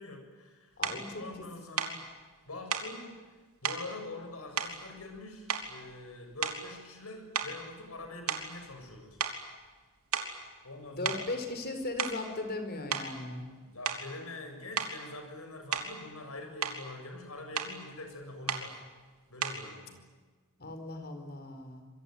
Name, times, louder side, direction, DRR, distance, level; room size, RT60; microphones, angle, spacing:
voice 1, 0.0-0.8 1.2-2.1 2.5-3.1 3.6-9.2 10.6-11.2 13.6-18.8 19.3-20.0, left 2 dB, 70° left, 4 dB, 7.4 m, -44 dB
voice 2, 0.8-1.2 10.9-13.5 20.6-21.9, left 2 dB, 45° left, 7 dB, 4.8 m, -37 dB
sound 1, 0.8-1.0 1.8-2.0 2.7-2.9 3.6-3.9 4.6-5.2 5.5-5.9 6.4-6.8 7.3-8.9 9.2-9.4 10.1-10.4 11.1-11.3 11.8-12.3 12.9-13.1 13.9-14.1 14.8-15.0 15.7-16.0 16.4-16.8 17.6-17.8 18.5-18.7 19.4-19.7, right 7 dB, 75° right, 3.4 m, -34 dB
26.5 x 23.0 x 9.4 m, 1.4 s
head